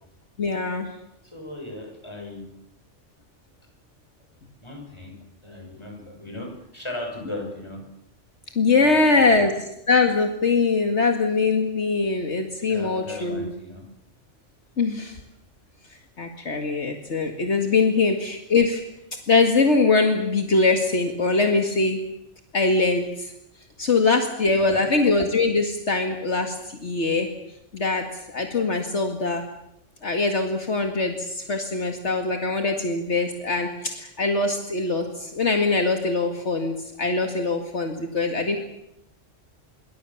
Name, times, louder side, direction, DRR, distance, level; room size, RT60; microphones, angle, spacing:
voice 1, 0.4-0.9 8.6-9.5 9.9-13.5 14.8-15.2 16.2-18.8 19.3-22.0 22.5-23.3 23.8-27.3 27.7-29.4 30.0-38.6, left 3 dB, 65° left, 4 dB, 2.3 m, -22 dB
voice 2, 1.2-2.5 4.6-5.1 5.4-7.8 8.8-9.4 12.6-13.9 24.6-24.8 38.3-38.6, left 1 dB, 20° left, 2 dB, 6.5 m, -37 dB
27.0 x 23.5 x 7.2 m, 0.82 s
omnidirectional pair, 1.3 m